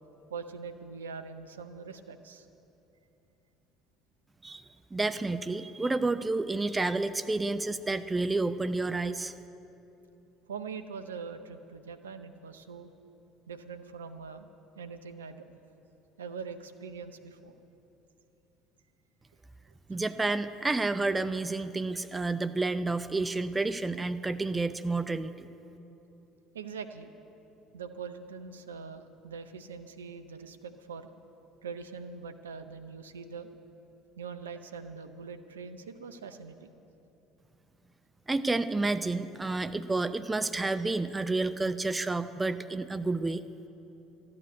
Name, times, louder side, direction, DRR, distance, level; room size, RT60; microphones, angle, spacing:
voice 1, 0.3-2.5 10.5-12.9 13.5-14.5 14.8-15.5 16.2-17.5 26.5-27.1 27.7-31.1 31.6-33.5 34.2-36.7, right 5 dB, 80° right, 9 dB, 0.6 m, -42 dB
voice 2, 4.9-9.3 19.9-25.5 38.3-43.4, right 3 dB, 15° right, 12 dB, 0.5 m, -30 dB
13.5 x 9.5 x 8.4 m, 2.9 s
figure-of-eight pair, 60°, 0 cm